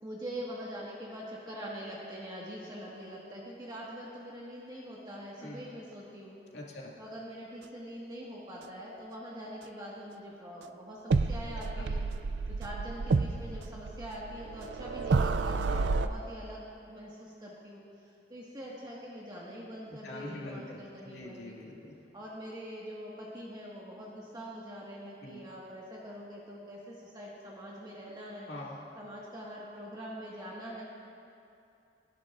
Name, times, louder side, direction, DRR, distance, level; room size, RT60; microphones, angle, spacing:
voice 1, 0.0-6.4 7.0-12.0 12.6-21.6 22.1-28.5 29.0-30.8, equal, 25° right, -5 dB, 1.7 m, -44 dB
voice 2, 6.5-6.9 11.7-11.9 15.7-15.9 20.0-21.9 25.2-25.4 28.5-28.8, left 2 dB, 75° left, -3 dB, 2.3 m, -44 dB
sound 1, 11.1-16.1, right 3 dB, 80° right, 0.5 m, -30 dB
29.5 x 11.0 x 2.5 m, 2.6 s
head